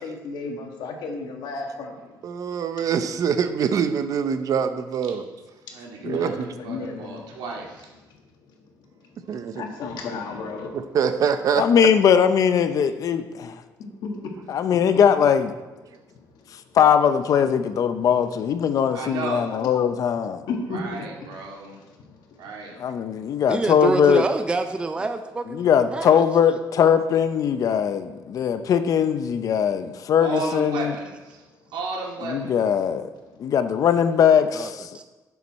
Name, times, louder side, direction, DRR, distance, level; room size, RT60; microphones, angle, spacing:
voice 1, 0.0-2.2 6.0-7.4 8.1-11.0 14.0-14.8 15.9-16.7 20.5-22.5 23.1-23.4 28.3-28.4 33.4-33.5, left 3 dB, 70° left, 2 dB, 1.7 m, -35 dB
voice 2, 2.2-5.2 6.0-6.3 9.3-9.6 10.9-11.6, right 7 dB, 50° right, 10 dB, 0.7 m, -24 dB
voice 3, 5.7-6.3 6.6-7.9 10.1-10.2 18.9-19.5 20.7-21.8 22.4-22.8 30.2-31.4 31.7-32.6, right 3 dB, 85° right, -1 dB, 2.2 m, -33 dB
voice 4, 11.6-13.5 14.5-15.5 16.7-20.4 22.8-24.2 25.5-31.0 32.2-33.1 33.4-34.9, left 8 dB, 50° left, 10 dB, 0.6 m, -20 dB
voice 5, 23.5-26.6 34.5-34.7 34.9-35.0, right 3 dB, 15° right, 8 dB, 0.4 m, -27 dB
11.0 x 7.0 x 4.2 m, 1.2 s
cardioid pair, 150°, 8 cm